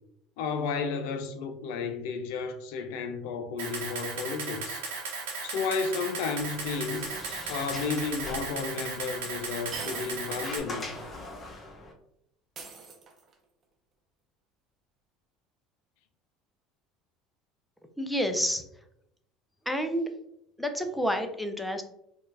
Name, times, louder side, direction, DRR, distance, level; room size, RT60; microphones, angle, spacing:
voice 1, 0.4-4.8 5.4-7.1 7.5-10.9, left 5 dB, 75° left, 0.4 m, -32 dB
Camera, 3.6-10.6, right 4 dB, 85° right, 0.9 m, -36 dB
Sliding door, 6.3-11.9, left 2 dB, 30° left, 0.8 m, -43 dB
sound 1, 8.3-8.4 9.7-10.4 10.8-10.9 12.6-13.4, right 4 dB, 45° right, 0.7 m, -42 dB
voice 2, 18.0-18.6 19.7-20.1 20.6-21.8, equal, ahead, 0.5 m, -29 dB
4.4 x 2.4 x 2.5 m
hypercardioid pair, 85°, 0 cm